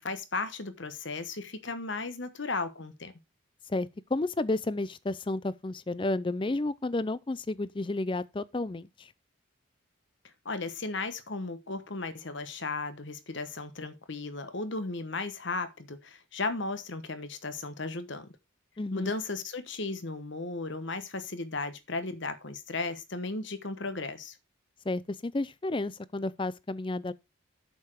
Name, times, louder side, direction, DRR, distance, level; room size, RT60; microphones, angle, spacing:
voice 1, 0.0-3.1 10.4-18.3 18.9-24.3, left 3 dB, 60° left, 1.2 m, -35 dB
voice 2, 3.7-9.1 18.8-19.1 24.9-27.1, left 2 dB, 25° left, 0.4 m, -31 dB
8.1 x 6.8 x 4.6 m
head